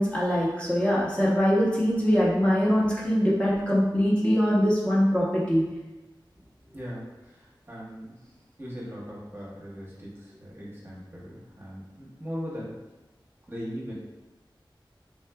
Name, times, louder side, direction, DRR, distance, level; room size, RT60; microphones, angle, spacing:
voice 1, 0.0-5.6, equal, 15° left, -8 dB, 0.7 m, -23 dB
voice 2, 7.7-8.1 8.6-10.1 10.4-12.7 13.5-13.9, equal, 25° right, -6 dB, 0.8 m, -38 dB
3.5 x 2.4 x 2.2 m, 1.1 s
wide cardioid pair, 50°, 9 cm